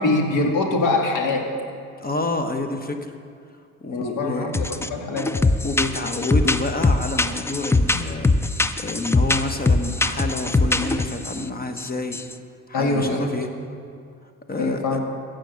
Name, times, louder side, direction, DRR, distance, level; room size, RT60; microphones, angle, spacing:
voice 1, 0.0-1.5 3.9-5.3 12.7-13.4 14.5-15.0, left 2 dB, 55° left, 2 dB, 2.1 m, -23 dB
voice 2, 2.0-3.2 3.8-4.5 5.6-8.4 8.8-12.2 12.7-13.5 14.5-15.0, left 2 dB, 25° left, 7 dB, 1.1 m, -28 dB
sound 1, 4.5-4.9 5.2-11.4 11.8-12.3, left 3 dB, 5° left, 0.4 m, -21 dB
15.5 x 6.5 x 6.2 m, 2.4 s
hypercardioid pair, 60°, 38 cm